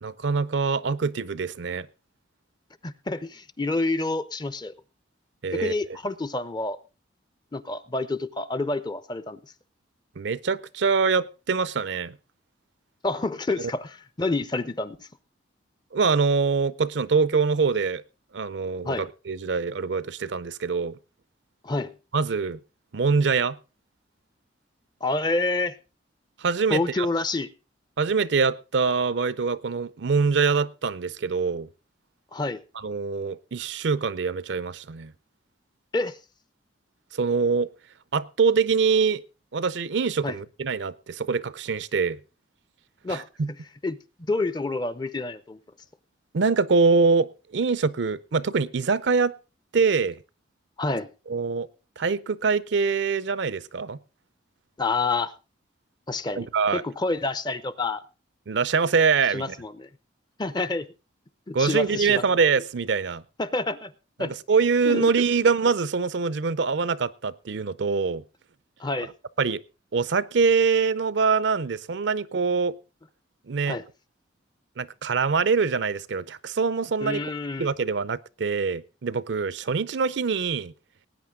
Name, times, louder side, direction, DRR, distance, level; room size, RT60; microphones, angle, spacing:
voice 1, 0.0-1.9 5.4-5.7 10.2-12.1 15.9-18.0 18.3-21.0 22.1-22.6 22.9-23.6 26.4-27.1 28.0-31.7 32.8-35.1 37.1-37.7 38.1-39.2 39.5-42.2 43.1-43.5 46.3-49.3 49.7-50.2 51.3-51.7 52.0-54.0 56.4-56.8 58.5-59.5 61.5-63.2 64.2-68.2 69.4-69.6 69.9-72.8 73.5-73.8 74.8-77.2 77.6-80.7, right 5 dB, 65° right, 0.5 m, -24 dB
voice 2, 2.8-4.7 5.5-6.8 7.5-9.4 13.0-15.1 18.8-19.1 21.6-21.9 25.0-25.8 26.7-27.5 32.3-32.6 35.9-36.2 40.2-40.4 43.0-43.3 43.8-45.6 50.8-51.1 54.8-55.3 56.1-58.0 59.3-59.9 60.4-60.9 61.5-62.2 63.4-63.9 64.2-64.4 64.9-65.1 68.8-69.1 73.7-73.9 77.0-77.7, left 2 dB, 20° left, 0.5 m, -28 dB
19.0 x 9.1 x 3.6 m
head